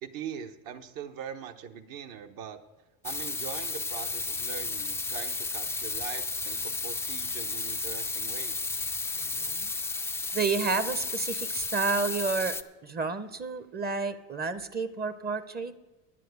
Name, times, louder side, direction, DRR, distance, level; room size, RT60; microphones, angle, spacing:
voice 1, 0.0-2.6 3.0-8.7, right 8 dB, 55° right, 7 dB, 1.2 m, -42 dB
sound 1, 3.0-12.6, left 4 dB, 5° left, 0.4 m, -33 dB
voice 2, 9.1-9.7 10.3-12.6 12.8-15.7, right 4 dB, 25° right, 12 dB, 0.8 m, -30 dB
10.0 x 7.6 x 8.2 m, 1.1 s
hypercardioid pair, 95°, 40 cm